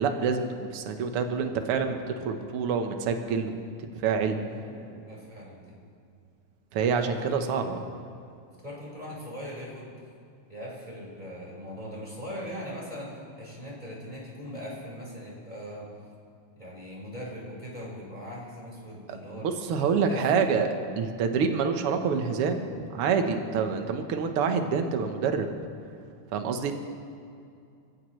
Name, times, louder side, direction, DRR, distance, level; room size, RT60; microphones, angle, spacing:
voice 1, 0.0-3.6 4.0-4.4 6.7-7.8 19.4-20.7 21.0-25.6 26.3-26.7, right 6 dB, 60° right, 6 dB, 1.8 m, -27 dB
voice 2, 4.5-5.8 6.8-8.2 8.6-9.9 10.5-15.9 16.6-19.5 19.8-20.3, equal, 15° right, -5 dB, 5.2 m, -40 dB
29.0 x 15.5 x 3.3 m, 2.5 s
omnidirectional pair, 3.4 m